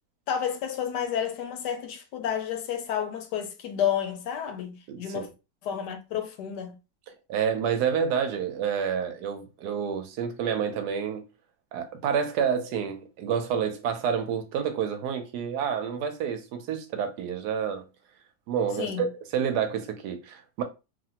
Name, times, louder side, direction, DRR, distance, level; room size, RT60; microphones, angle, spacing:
voice 1, 0.3-5.3 5.6-6.7 18.8-19.1, left 8 dB, 80° left, 1.2 m, -30 dB
voice 2, 4.9-5.3 7.3-11.2 11.7-17.8 18.5-20.6, right 7 dB, 75° right, 1.1 m, -29 dB
3.0 x 2.4 x 2.8 m
omnidirectional pair, 1.8 m